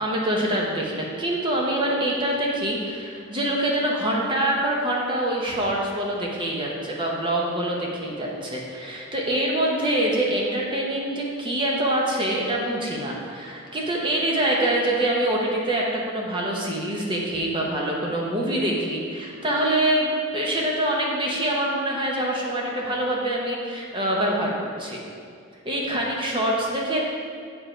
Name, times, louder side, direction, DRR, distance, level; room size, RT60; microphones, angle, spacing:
voice 1, 0.0-24.5 24.8-25.0 25.6-27.0, right 1 dB, 25° right, -2 dB, 0.9 m, -25 dB
7.2 x 5.0 x 4.5 m, 2.3 s
head